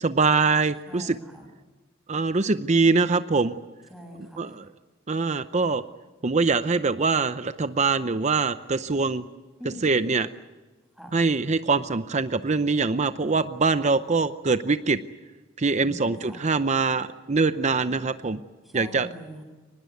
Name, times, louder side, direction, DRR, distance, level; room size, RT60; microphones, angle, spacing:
voice 1, 0.0-1.2 2.1-3.5 4.4-4.6 5.1-5.8 6.2-9.2 9.8-10.3 11.1-15.0 15.6-18.4 18.7-19.1, right 4 dB, 35° right, 11 dB, 0.7 m, -23 dB
voice 2, 0.9-1.5 3.9-4.6 9.6-9.9 10.9-11.2 15.8-16.5 18.6-19.4, equal, ahead, 1 dB, 7.4 m, -43 dB
24.0 x 20.0 x 9.5 m, 1.2 s
head